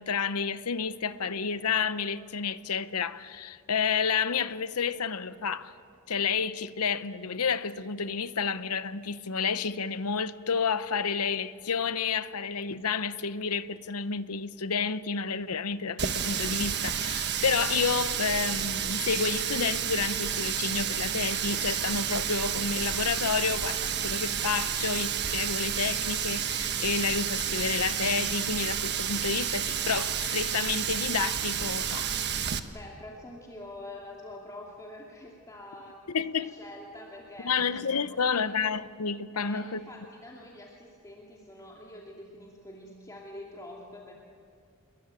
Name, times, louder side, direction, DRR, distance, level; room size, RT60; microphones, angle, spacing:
voice 1, 0.0-5.7 6.1-32.1 36.1-36.5 37.4-39.8, left 5 dB, 75° left, 0.9 m, -30 dB
Water tap faucet, 16.0-32.6, right 8 dB, 50° right, 1.3 m, -30 dB
voice 2, 32.7-38.4 39.3-44.1, left 1 dB, 15° left, 2.6 m, -46 dB
28.5 x 21.5 x 9.1 m
head